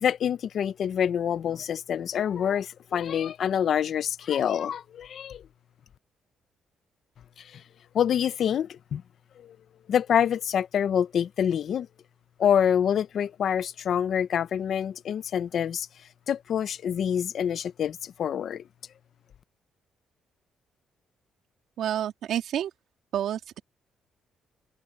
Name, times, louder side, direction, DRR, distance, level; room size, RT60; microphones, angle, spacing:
voice 1, 0.0-5.4 7.4-7.6 7.9-9.0 9.4-9.6 9.9-11.9 12.4-15.9 16.3-18.6, left 8 dB, 60° left, 0.8 m, -26 dB
voice 2, 21.8-22.7 23.1-23.6, right 10 dB, 75° right, 2.8 m, -29 dB
cardioid pair, 90°, 0 cm